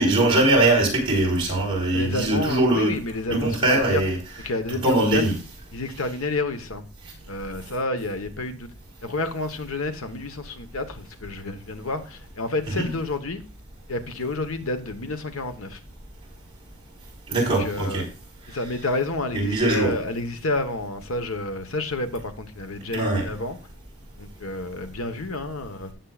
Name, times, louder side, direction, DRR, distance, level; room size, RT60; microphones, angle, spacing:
voice 1, 0.0-2.9 3.3-4.2 4.8-5.3 12.7-12.9 17.3-18.1 19.3-19.9 22.9-23.3, right 2 dB, 25° right, 4.4 m, -21 dB
voice 2, 1.9-4.0 4.4-5.3 5.7-6.8 7.3-8.7 9.0-13.4 13.9-15.8 17.4-18.1 18.5-23.6 24.2-25.9, left 2 dB, 75° left, 1.2 m, -29 dB
17.5 x 7.4 x 2.5 m
head